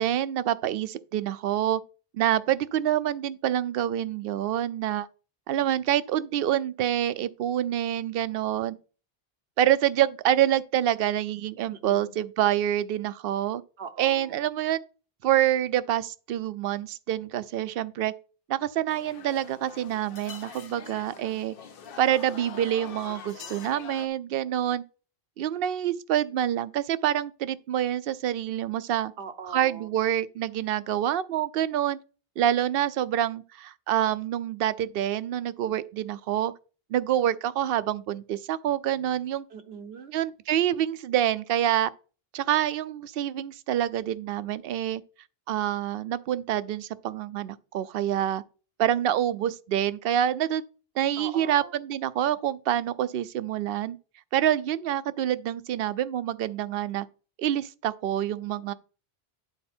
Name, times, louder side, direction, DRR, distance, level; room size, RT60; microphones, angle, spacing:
voice 1, 0.0-1.8 2.1-5.1 5.5-8.8 9.6-13.6 14.0-14.8 15.2-18.1 18.5-21.5 22.0-24.8 25.4-29.1 29.5-32.0 32.4-36.5 36.9-39.4 40.1-41.9 42.3-45.0 45.5-48.4 48.8-50.6 51.0-54.0 54.3-57.1 57.4-58.7, right 11 dB, 70° right, 0.7 m, -26 dB
voice 2, 11.7-12.1 13.8-14.4 29.2-29.9 39.5-40.1 51.2-51.8, right 5 dB, 85° right, 1.2 m, -41 dB
sound 1, 18.9-24.1, left 6 dB, 65° left, 0.9 m, -44 dB
10.0 x 4.3 x 4.3 m
omnidirectional pair, 1.0 m